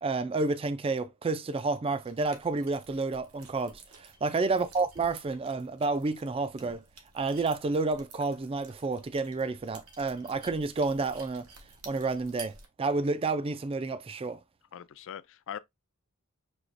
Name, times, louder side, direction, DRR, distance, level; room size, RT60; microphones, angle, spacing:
voice 1, 0.0-6.8 7.1-11.5 11.9-14.4, right 3 dB, 25° right, 0.3 m, -30 dB
sound 1, 2.0-12.7, right 4 dB, 75° right, 1.2 m, -52 dB
voice 2, 14.7-15.6, left 9 dB, 60° left, 0.4 m, -42 dB
6.3 x 2.9 x 2.5 m
head